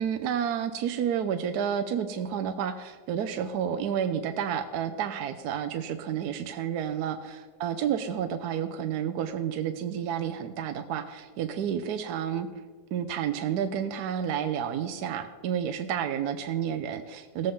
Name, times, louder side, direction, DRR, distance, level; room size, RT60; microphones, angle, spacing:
voice 1, 0.0-12.5 12.9-17.5, right 8 dB, 70° right, 8 dB, 1.0 m, -30 dB
18.0 x 7.7 x 3.7 m, 1.4 s
omnidirectional pair, 2.2 m